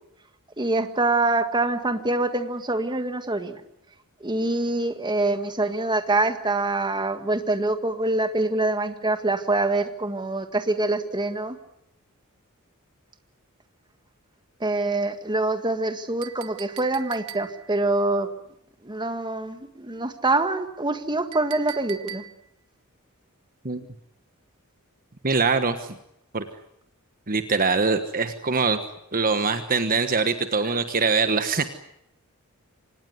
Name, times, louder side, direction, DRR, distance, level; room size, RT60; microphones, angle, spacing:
voice 1, 0.6-3.6 4.2-11.6 14.6-18.3 18.8-22.2, right 2 dB, 20° right, 8 dB, 1.7 m, -25 dB
Chink clink, 16.2-17.8 21.3-22.6, right 10 dB, 80° right, 1.4 m, -41 dB
voice 2, 25.2-26.0 26.3-26.4 27.3-28.8 29.1-31.7, right 4 dB, 40° right, 9 dB, 1.3 m, -23 dB
25.5 x 19.0 x 9.5 m, 0.79 s
head